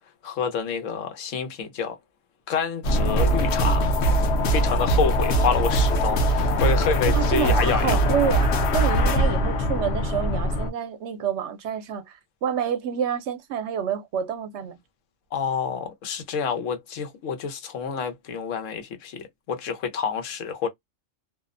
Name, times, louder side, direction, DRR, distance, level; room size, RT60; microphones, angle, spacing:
voice 1, 0.2-2.0 2.5-3.9 4.4-8.0 15.3-20.7, left 6 dB, 90° left, 1.1 m, -28 dB
sound 1, 2.8-10.7, right 1 dB, 70° left, 0.9 m, -22 dB
voice 2, 7.1-14.8, right 8 dB, 70° right, 0.8 m, -28 dB
2.6 x 2.0 x 2.4 m
omnidirectional pair, 1.3 m